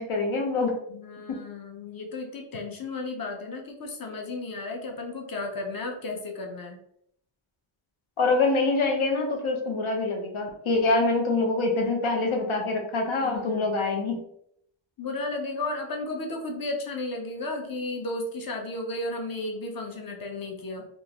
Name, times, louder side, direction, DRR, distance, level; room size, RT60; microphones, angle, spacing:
voice 1, 0.0-0.7 8.2-14.2, left 3 dB, 85° left, 2 dB, 0.7 m, -25 dB
voice 2, 0.9-6.8 13.2-13.7 15.0-20.9, left 2 dB, 45° left, 2 dB, 0.8 m, -34 dB
3.6 x 2.5 x 2.9 m, 0.72 s
wide cardioid pair, 75°, 48 cm